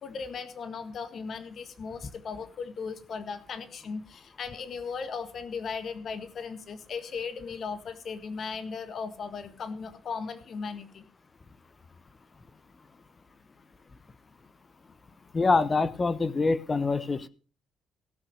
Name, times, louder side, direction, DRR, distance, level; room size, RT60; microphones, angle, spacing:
voice 1, 0.0-11.1, left 5 dB, 55° left, 10 dB, 1.7 m, -37 dB
voice 2, 15.3-17.3, left 3 dB, 30° left, 14 dB, 0.9 m, -25 dB
17.0 x 5.9 x 6.5 m, 0.39 s
cardioid pair, 90°, 0 cm